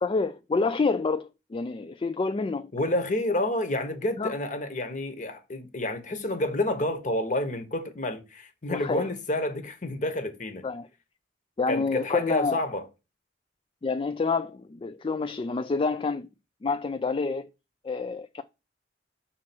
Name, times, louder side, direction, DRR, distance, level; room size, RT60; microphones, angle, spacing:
voice 1, 0.0-2.7 4.2-4.3 8.7-9.1 10.6-10.9 11.6-12.6 13.8-16.3 16.6-17.5 17.8-18.4, left 4 dB, 30° left, 0.3 m, -28 dB
voice 2, 2.7-10.7 11.7-12.8, left 1 dB, 45° left, 1.2 m, -29 dB
6.2 x 4.3 x 6.0 m
head